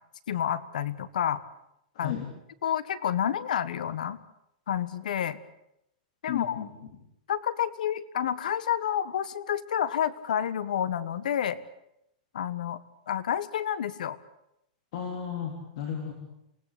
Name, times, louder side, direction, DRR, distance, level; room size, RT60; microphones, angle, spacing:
voice 1, 0.3-1.4 2.0-2.2 2.6-4.2 4.7-5.4 6.2-6.6 7.3-11.6 12.3-12.8 13.1-14.2, left 9 dB, 75° left, 17 dB, 1.6 m, -29 dB
voice 2, 1.9-2.3 6.3-6.7 14.9-16.1, left 8 dB, 50° left, 3 dB, 3.8 m, -34 dB
28.0 x 18.5 x 8.6 m, 0.82 s
supercardioid pair, 170°, 4 cm